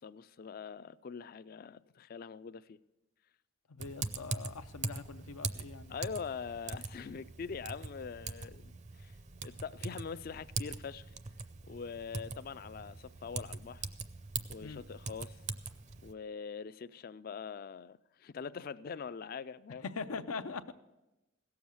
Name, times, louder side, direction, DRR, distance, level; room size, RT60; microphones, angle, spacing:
voice 1, 0.0-2.8 5.9-9.2 9.4-11.1 11.6-13.9 14.5-15.4 16.0-19.8, left 6 dB, 45° left, 0.3 m, -43 dB
voice 2, 3.7-5.9 14.6-14.8 19.8-20.7, left 4 dB, 90° left, 0.6 m, -42 dB
Typing, 3.8-16.1, right 4 dB, 35° right, 0.5 m, -42 dB
16.5 x 7.1 x 6.3 m
head